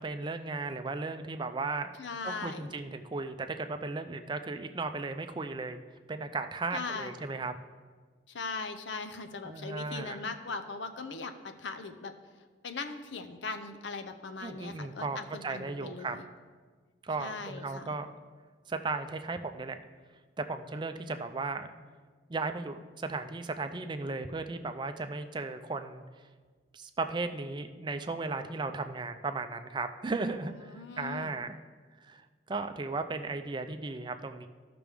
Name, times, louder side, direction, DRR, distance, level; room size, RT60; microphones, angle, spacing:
voice 1, 0.0-1.9 2.2-5.8 6.1-7.5 9.4-10.3 14.4-16.2 17.0-18.1 18.7-19.8 20.4-21.7 22.3-26.0 26.7-31.6 32.0-32.2 32.5-34.5, right 3 dB, 25° right, 8 dB, 0.4 m, -36 dB
voice 2, 2.0-2.7 6.7-7.2 8.3-12.1 12.6-16.3 17.2-18.0 30.6-31.3, left 4 dB, 80° left, 9 dB, 0.7 m, -39 dB
14.0 x 6.0 x 3.4 m, 1.5 s
head